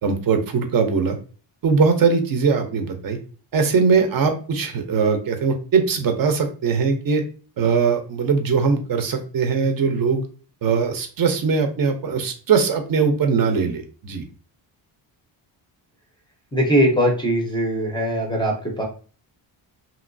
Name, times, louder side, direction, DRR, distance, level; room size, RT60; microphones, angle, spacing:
voice 1, 0.0-1.2 1.6-3.2 3.5-7.2 7.6-10.2 10.6-14.2, right 5 dB, 50° right, 6 dB, 0.5 m, -20 dB
voice 2, 16.5-18.8, equal, 10° left, 0 dB, 0.5 m, -20 dB
2.9 x 2.8 x 2.5 m, 0.37 s
cardioid pair, 160°, 46 cm